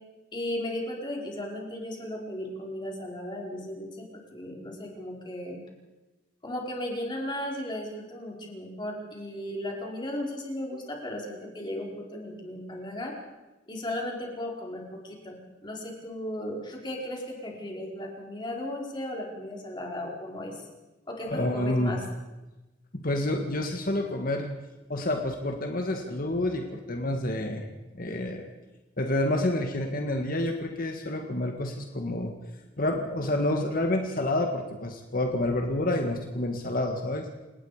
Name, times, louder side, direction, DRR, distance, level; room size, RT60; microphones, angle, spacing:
voice 1, 0.3-5.6 6.4-13.1 13.7-20.6 21.1-22.0, left 1 dB, 25° left, -1 dB, 4.8 m, -36 dB
voice 2, 21.3-22.0 22.9-24.5 24.9-27.7 27.9-28.5 29.0-32.3 32.8-37.2, left 1 dB, 50° left, 3 dB, 1.9 m, -28 dB
28.5 x 19.0 x 5.1 m, 1.1 s
head